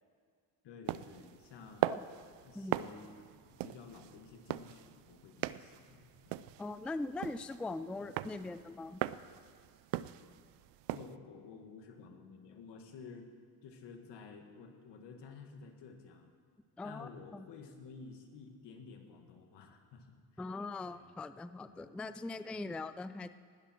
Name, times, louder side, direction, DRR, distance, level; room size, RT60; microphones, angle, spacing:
voice 1, 0.6-1.9 2.4-6.6 8.0-8.1 10.9-13.4 13.6-16.3 16.8-20.4 20.8-21.1 21.6-22.0 22.3-22.6, left 5 dB, 80° left, 4 dB, 1.9 m, -52 dB
sound 1, 0.9-11.1, right 15 dB, 85° right, 0.5 m, -40 dB
voice 2, 6.6-9.0 16.8-17.5 20.4-23.4, left 3 dB, 5° left, 12 dB, 0.3 m, -41 dB
19.5 x 12.0 x 4.4 m, 2.1 s
cardioid pair, 90°, 41 cm